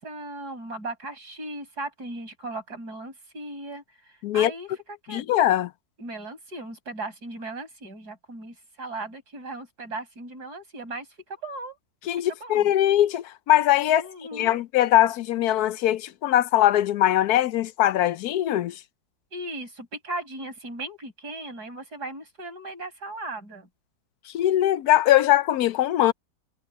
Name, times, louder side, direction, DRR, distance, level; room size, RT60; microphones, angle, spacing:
voice 1, 0.0-5.2 6.0-11.8 12.3-12.7 13.9-14.6 19.3-23.7, right 2 dB, 85° right, 6.4 m, -37 dB
voice 2, 5.1-5.7 12.1-14.0 14.3-18.7 24.3-26.1, left 13 dB, 75° left, 1.1 m, -21 dB
omnidirectional pair, 1.7 m